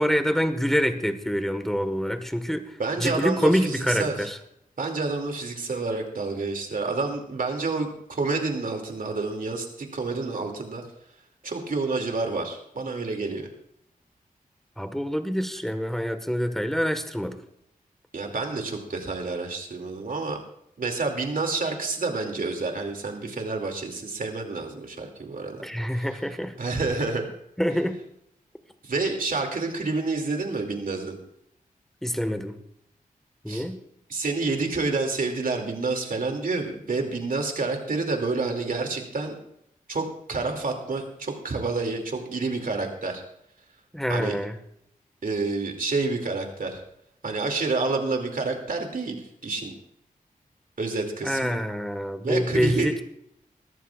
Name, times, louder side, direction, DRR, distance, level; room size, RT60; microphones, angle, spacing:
voice 1, 0.0-2.7 3.0-4.4 14.8-17.4 25.6-26.5 27.6-28.0 32.0-32.6 33.4-33.8 43.9-44.6 51.2-53.0, equal, ahead, 8 dB, 1.5 m, -26 dB
voice 2, 2.8-4.3 4.8-10.9 11.4-13.5 18.1-20.4 20.8-25.6 26.6-27.3 28.8-31.2 33.5-33.6 34.1-39.4 39.9-43.2 44.1-44.4 45.2-46.8 47.2-49.2 49.4-49.7 50.8-51.6 52.2-53.0, right 3 dB, 70° right, 3 dB, 2.6 m, -28 dB
21.5 x 14.0 x 2.5 m, 0.75 s
wide cardioid pair, 65°, 15 cm